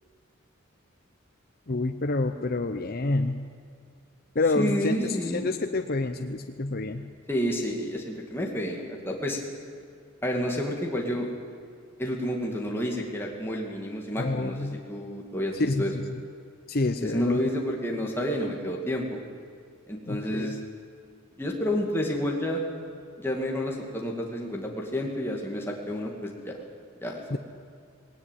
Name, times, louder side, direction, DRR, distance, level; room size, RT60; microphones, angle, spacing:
voice 1, 1.7-3.4 4.3-7.1 14.2-14.8 15.5-16.2 16.7-17.4 20.1-20.6 27.3-27.4, left 2 dB, 45° left, 6 dB, 0.8 m, -28 dB
voice 2, 4.6-5.4 7.3-9.4 10.2-11.3 12.0-15.9 17.0-19.2 19.9-20.6 21.4-22.6 23.2-26.5 27.0-27.4, equal, 10° left, -1 dB, 2.4 m, -30 dB
19.5 x 18.5 x 9.2 m, 2.3 s
head